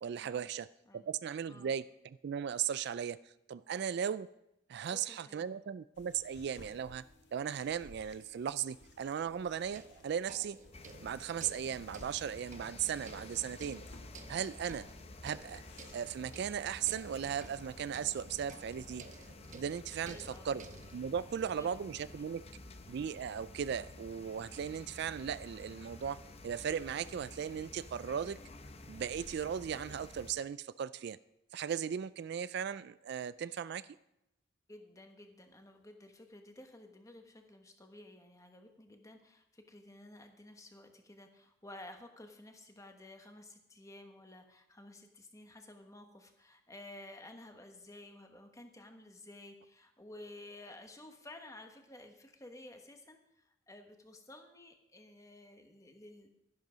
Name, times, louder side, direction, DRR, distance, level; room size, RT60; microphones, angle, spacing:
voice 1, 0.0-0.7 0.9-4.3 4.7-7.0 7.3-10.6 11.0-13.8 14.3-14.9 15.2-15.6 15.9-19.1 19.5-20.6 20.9-22.4 22.9-28.4 28.9-31.2 31.5-33.9, right 8 dB, 55° right, 16 dB, 0.3 m, -37 dB
voice 2, 4.9-5.5 19.9-20.6 21.5-21.7 22.0-22.5 34.7-56.3, left 1 dB, 15° left, 5 dB, 1.3 m, -53 dB
sound 1, 5.9-16.1, left 1 dB, 60° left, 1.7 m, -59 dB
sound 2, 9.3-21.0, right 3 dB, 40° right, 0.9 m, -55 dB
sound 3, 10.7-30.3, left 2 dB, 30° left, 0.8 m, -51 dB
12.0 x 11.0 x 5.0 m, 0.85 s
head